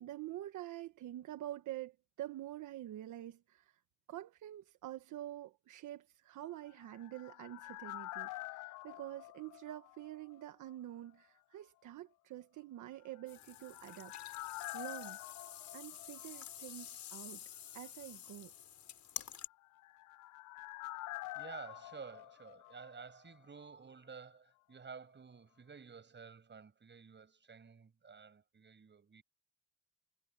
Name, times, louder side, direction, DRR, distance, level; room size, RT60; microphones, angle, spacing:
voice 1, 0.0-3.8 4.1-15.2 15.7-17.4 17.7-18.5, right 13 dB, 80° right, 1.3 m, -47 dB
sound 1, 6.6-10.4 10.7-10.8 13.2-16.9 17.1-17.2 19.5-23.4 23.6-23.7, left 19 dB, 90° left, 0.6 m, -48 dB
sound 2, 13.3-19.5, left 10 dB, 65° left, 4.8 m, -49 dB
voice 2, 21.3-29.2, right 5 dB, 35° right, 7.2 m, -52 dB
cardioid pair, 90°, 30 cm